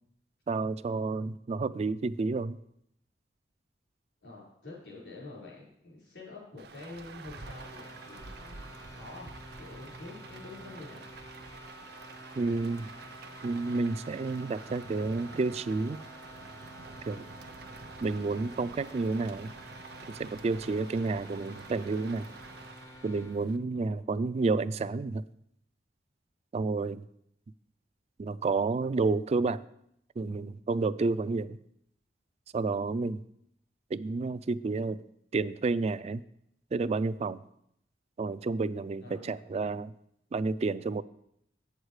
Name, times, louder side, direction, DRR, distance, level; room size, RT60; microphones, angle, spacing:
voice 1, 0.5-2.6 12.4-12.9 13.4-16.0 17.1-17.3 18.0-19.5 20.1-22.3 23.0-25.2 26.5-27.0 28.2-29.6 30.2-31.6 32.5-33.2 33.9-35.0 35.3-36.2 36.7-37.4 38.2-39.9 40.3-41.0, right 3 dB, 35° right, 16 dB, 0.3 m, -30 dB
voice 2, 4.2-9.3 9.5-11.0 23.8-24.0 39.0-39.3, left 2 dB, 85° left, -5 dB, 4.8 m, -47 dB
Rain, 6.6-23.6, right 4 dB, 60° right, 0.7 m, -48 dB
sound 1, 7.4-23.4, left 1 dB, 20° left, 0.5 m, -51 dB
8.8 x 8.0 x 4.8 m, 0.74 s
head